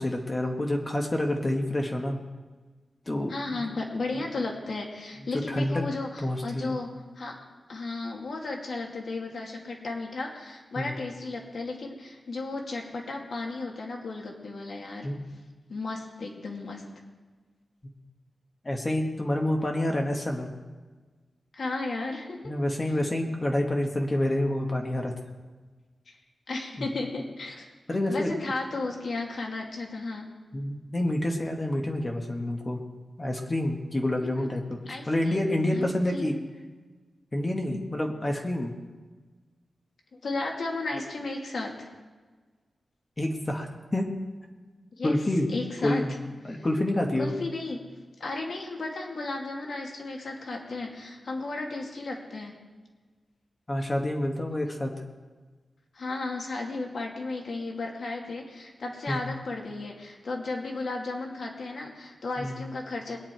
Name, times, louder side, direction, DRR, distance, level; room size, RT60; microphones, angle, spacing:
voice 1, 0.0-2.2 3.1-3.6 5.5-5.7 6.2-6.8 10.8-10.9 15.0-15.2 18.6-20.5 22.4-25.1 26.8-26.9 27.9-28.3 30.5-32.8 33.2-36.3 37.3-38.7 43.2-43.7 43.9-44.1 45.0-45.5 45.8-46.1 46.5-47.3 53.7-54.9 59.1-59.2 62.4-62.6, left 1 dB, 20° left, 1 dB, 1.3 m, -28 dB
voice 2, 3.3-7.4 7.7-15.1 15.7-16.8 21.5-22.5 26.1-26.2 26.5-27.7 28.1-30.3 34.2-34.5 34.9-35.4 35.7-36.4 37.7-37.8 40.2-41.9 44.9-45.2 45.5-46.0 46.5-46.7 47.2-47.8 48.2-52.5 55.9-63.2, left 3 dB, 55° left, 1 dB, 2.3 m, -34 dB
21.5 x 9.7 x 4.5 m, 1.4 s
wide cardioid pair, 175°, 0 cm